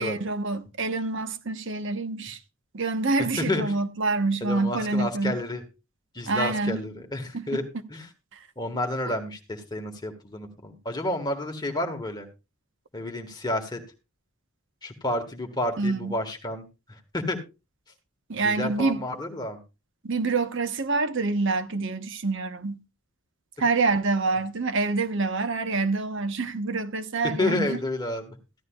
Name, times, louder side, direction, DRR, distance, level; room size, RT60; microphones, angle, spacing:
voice 1, 0.0-2.4 2.7-5.4 6.3-6.8 7.3-7.4 8.3-8.4 9.0-9.1 15.8-16.2 18.3-19.0 20.0-22.8 23.6-27.8, right 3 dB, 60° right, 1.0 m, -26 dB
voice 2, 3.2-3.7 4.4-5.6 6.1-7.6 7.9-8.1 8.5-12.3 12.9-13.8 14.8-17.4 18.3-19.6 27.4-28.4, left 1 dB, 20° left, 1.6 m, -30 dB
15.0 x 12.0 x 2.3 m
head